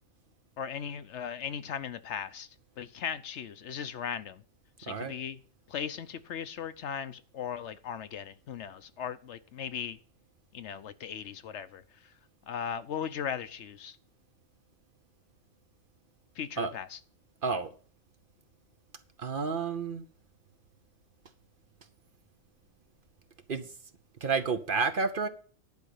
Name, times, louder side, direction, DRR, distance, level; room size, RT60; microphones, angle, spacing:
voice 1, 0.6-2.5 2.8-4.4 4.8-5.4 5.7-10.0 10.5-11.8 12.5-14.0 16.4-17.0, left 8 dB, 65° left, 1.0 m, -37 dB
voice 2, 19.2-20.0 23.5-23.7 24.2-25.3, right 4 dB, 50° right, 0.9 m, -30 dB
10.5 x 5.1 x 8.2 m
omnidirectional pair, 1.3 m